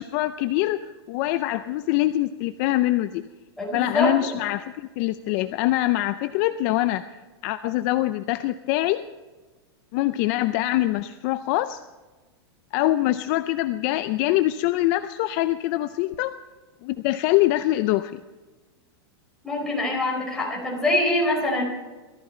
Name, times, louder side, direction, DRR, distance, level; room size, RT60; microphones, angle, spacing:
voice 1, 0.0-3.2 3.7-7.0 7.4-9.0 9.9-11.8 12.7-16.3 16.8-18.2, left 16 dB, 45° left, 11 dB, 0.5 m, -24 dB
voice 2, 3.6-4.3 19.4-21.6, left 1 dB, 5° left, -3 dB, 4.6 m, -24 dB
18.5 x 14.5 x 4.3 m, 1.2 s
supercardioid pair, 150°, 14 cm